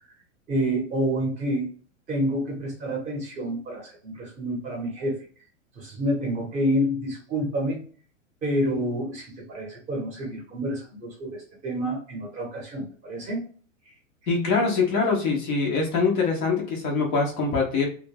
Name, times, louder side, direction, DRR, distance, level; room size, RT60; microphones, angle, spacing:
voice 1, 0.5-1.7 2.1-5.2 5.8-7.8 8.4-13.4, equal, 20° right, 0 dB, 0.7 m, -28 dB
voice 2, 14.3-17.9, left 4 dB, 15° left, -1 dB, 0.3 m, -23 dB
2.2 x 2.1 x 3.1 m, 0.43 s
supercardioid pair, 150°, 39 cm